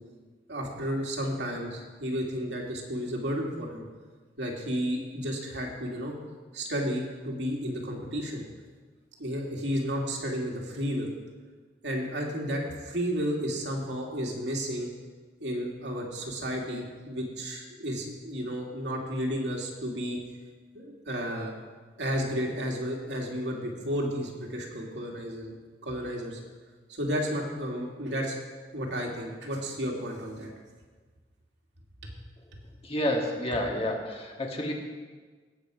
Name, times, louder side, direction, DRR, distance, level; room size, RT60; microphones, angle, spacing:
voice 1, 0.5-3.8 4.4-6.1 6.5-8.5 9.2-11.1 11.8-14.9 15.4-20.2 20.7-21.6 22.0-25.5 25.8-26.4 26.9-28.4 28.7-30.5 32.0-32.1 32.5-32.6, equal, 85° right, -1 dB, 2.5 m, -32 dB
voice 2, 32.8-34.7, left 1 dB, 35° left, 1 dB, 1.7 m, -29 dB
17.5 x 7.7 x 5.0 m, 1.4 s
head